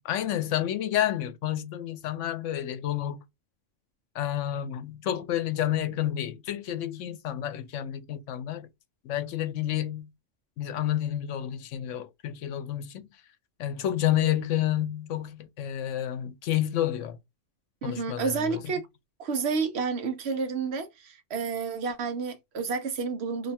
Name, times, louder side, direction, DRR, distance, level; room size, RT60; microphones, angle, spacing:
voice 1, 0.1-3.2 4.1-8.7 9.0-10.1 10.6-13.1 13.6-17.2 17.8-18.6, left 12 dB, 85° left, 0.9 m, -30 dB
voice 2, 17.8-18.9 19.2-23.5, right 5 dB, 65° right, 0.9 m, -30 dB
2.8 x 2.2 x 4.1 m
omnidirectional pair, 1.2 m